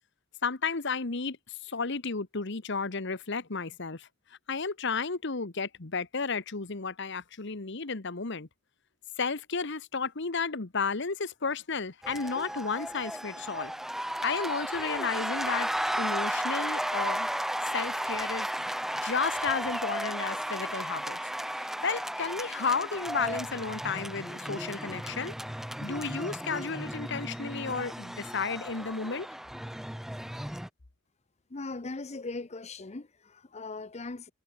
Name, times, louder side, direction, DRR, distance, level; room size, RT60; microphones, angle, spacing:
voice 1, 0.4-1.4 1.6-4.1 4.5-8.5 9.2-13.7 14.2-15.7 16.0-17.3 17.7-18.5 19.0-21.2 21.6-25.3 25.8-29.3, left 5 dB, 60° left, 1.3 m, -32 dB
sound 1, 12.0-30.7, equal, ahead, 0.4 m, -34 dB
voice 2, 31.5-34.3, left 3 dB, 35° left, 0.8 m, -39 dB
head